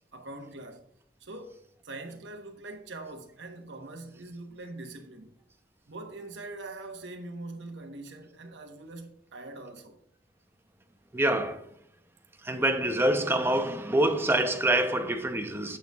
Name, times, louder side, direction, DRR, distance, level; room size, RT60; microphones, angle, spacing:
voice 1, 0.1-0.9 1.2-1.6 1.8-5.3 5.9-10.0, right 2 dB, 80° right, 1.1 m, -43 dB
voice 2, 11.1-11.7 12.4-15.8, right 1 dB, 15° right, 0.6 m, -26 dB
7.8 x 6.6 x 2.3 m
head